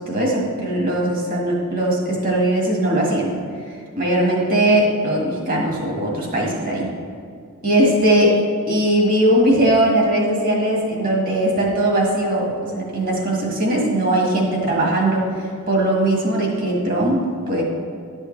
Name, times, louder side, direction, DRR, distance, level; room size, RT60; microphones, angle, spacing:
voice 1, 0.0-3.3 3.9-6.9 7.6-8.3 8.7-15.3 15.7-17.6, right 1 dB, 40° right, -2 dB, 1.7 m, -19 dB
11.0 x 6.4 x 3.3 m, 2.3 s
head